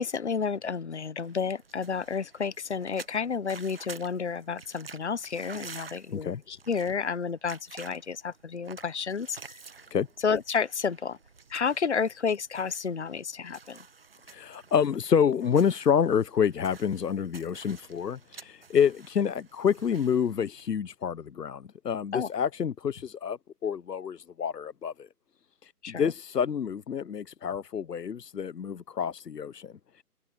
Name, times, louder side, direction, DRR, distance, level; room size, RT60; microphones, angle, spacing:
voice 1, 0.0-9.6 10.2-11.2 11.5-13.8 22.1-22.3 25.8-26.1, left 6 dB, 45° left, 1.1 m, -31 dB
sound 1, 1.2-20.7, right 5 dB, 35° right, 1.3 m, -50 dB
voice 2, 14.3-25.1 25.6-30.0, left 7 dB, 85° left, 1.0 m, -28 dB
hypercardioid pair, 175°, 47 cm